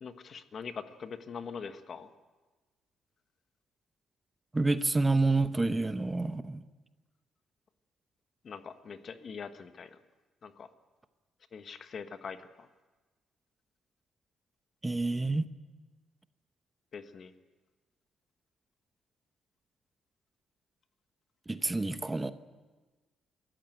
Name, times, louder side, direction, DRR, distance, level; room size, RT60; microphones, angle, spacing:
voice 1, 0.0-2.1 8.4-10.0 10.4-10.7 11.5-12.7 16.9-17.3, left 6 dB, 50° left, 10 dB, 1.3 m, -43 dB
voice 2, 4.5-6.6 14.8-15.5 21.5-22.3, right 3 dB, 15° right, 11 dB, 0.9 m, -28 dB
23.5 x 14.0 x 9.2 m, 1.3 s
cardioid pair, 90°, 0 cm